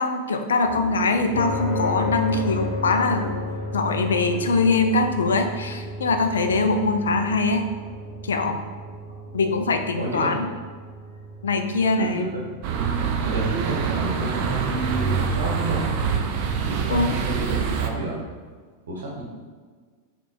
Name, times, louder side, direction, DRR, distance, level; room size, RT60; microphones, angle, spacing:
voice 1, 0.0-3.4 3.7-7.7 8.2-8.6 9.3-10.5 11.4-12.3 16.9-17.2, left 3 dB, 70° left, 6 dB, 0.3 m, -22 dB
sound 1, 0.6-16.4, equal, 85° left, 0.9 m, -43 dB
sound 2, 1.3-17.8, left 2 dB, 45° left, 0.9 m, -35 dB
voice 2, 10.0-10.3 12.0-12.5 13.2-18.2 18.9-19.2, right 1 dB, 70° right, -3 dB, 0.8 m, -30 dB
sound 3, 12.6-17.9, right 6 dB, 45° right, 0.4 m, -25 dB
4.4 x 3.0 x 2.5 m, 1.5 s
figure-of-eight pair, 90°, 0 cm